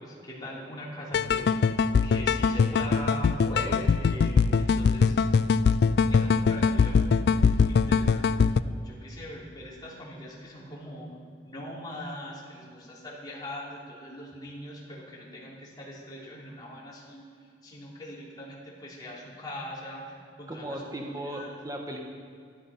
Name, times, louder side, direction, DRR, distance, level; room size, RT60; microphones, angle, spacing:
voice 1, 0.0-5.4 6.0-11.2 11.4-17.2 17.6-21.5, left 1 dB, 25° left, -6 dB, 3.2 m, -41 dB
sound 1, 1.1-8.6, left 5 dB, 60° left, 0.3 m, -22 dB
voice 2, 20.5-22.0, right 1 dB, 20° right, 1 dB, 1.3 m, -36 dB
13.0 x 11.0 x 5.5 m, 2.3 s
head